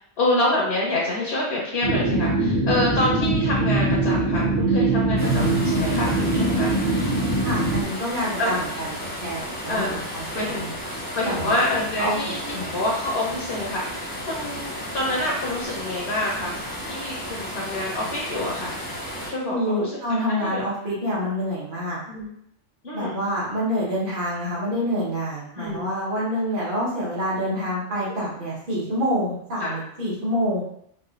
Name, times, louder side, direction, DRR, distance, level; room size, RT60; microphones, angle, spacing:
voice 1, 0.2-7.7 8.4-8.5 9.7-10.0 10.3-10.7 11.1-16.5 16.8-18.8 19.3-19.9 20.3-20.6 22.1-22.3 22.8-23.2 25.5-25.9 28.0-28.1 29.6-29.7, left 1 dB, 65° left, -4 dB, 1.0 m, -27 dB
sound 1, 1.8-7.8, right 2 dB, 75° right, 1.0 m, -22 dB
sound 2, 5.2-19.3, equal, 10° left, 0.8 m, -33 dB
voice 2, 7.4-10.7 11.2-11.6 12.0-12.7 19.5-22.0 22.9-30.6, equal, 45° right, -7 dB, 1.3 m, -27 dB
4.0 x 2.4 x 2.4 m, 0.71 s
omnidirectional pair, 1.2 m